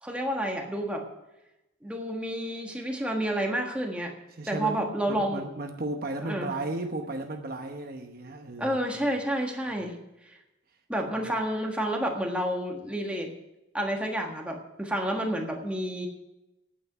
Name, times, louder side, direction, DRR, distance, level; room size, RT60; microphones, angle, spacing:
voice 1, 0.0-1.0 1.8-4.1 4.5-5.4 6.3-6.5 8.6-10.0 10.9-13.3 13.7-16.1, right 1 dB, 5° right, 1 dB, 1.5 m, -30 dB
voice 2, 4.3-8.8 9.7-9.9 11.1-11.3, right 2 dB, 50° right, 5 dB, 1.0 m, -35 dB
9.2 x 8.5 x 9.2 m, 0.95 s
head